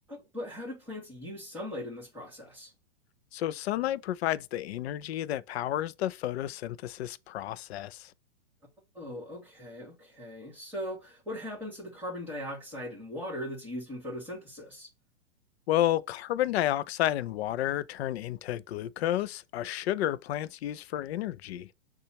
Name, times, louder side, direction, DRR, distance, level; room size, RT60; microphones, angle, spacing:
voice 1, 0.1-2.7 8.9-14.9, left 1 dB, 5° right, 2.4 m, -39 dB
voice 2, 3.3-8.1 15.7-21.7, left 13 dB, 60° left, 0.5 m, -31 dB
6.7 x 2.4 x 2.8 m
hypercardioid pair, 120°, 36 cm